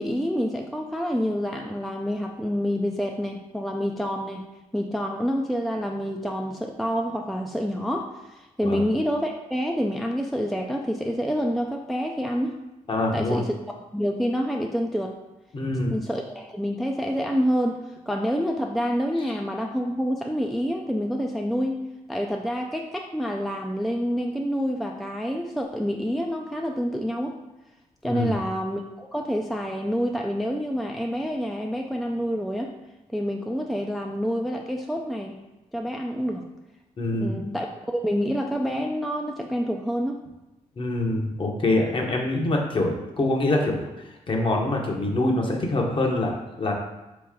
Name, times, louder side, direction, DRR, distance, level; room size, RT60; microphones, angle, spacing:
voice 1, 0.0-4.5 4.7-12.5 13.1-13.5 13.9-15.2 15.9-27.4 28.0-32.7 33.1-35.4 35.7-36.4 37.1-40.2, equal, ahead, 2 dB, 0.3 m, -27 dB
voice 2, 12.9-13.4 15.5-15.9 28.0-28.4 37.0-37.4 40.8-43.8 44.3-46.7, left 2 dB, 40° left, 1 dB, 0.9 m, -25 dB
4.1 x 3.0 x 3.6 m, 1.0 s
cardioid pair, 75°, 13 cm